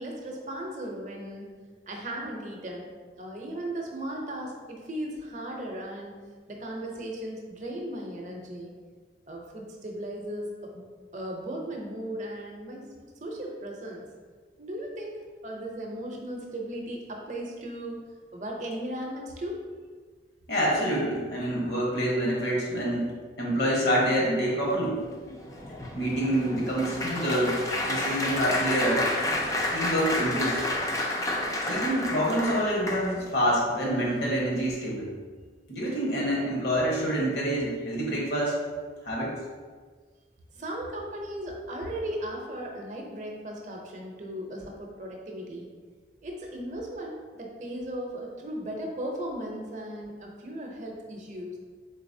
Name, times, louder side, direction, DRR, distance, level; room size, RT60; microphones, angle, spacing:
voice 1, 0.0-1.5 1.9-6.2 6.5-8.7 9.3-10.8 11.1-14.0 14.6-18.0 18.3-19.6 40.5-45.7 46.2-51.6, right 1 dB, 40° right, 0 dB, 0.6 m, -36 dB
voice 2, 20.5-23.1 23.4-25.0 25.9-27.6 27.8-29.5 29.7-30.7 31.7-35.1 35.7-38.6 39.0-39.3, equal, 70° left, -4 dB, 1.2 m, -27 dB
Applause, 25.1-33.4 34.0-34.3 34.5-34.7, left 1 dB, 20° left, 0.3 m, -30 dB
3.9 x 3.7 x 2.7 m, 1.5 s
head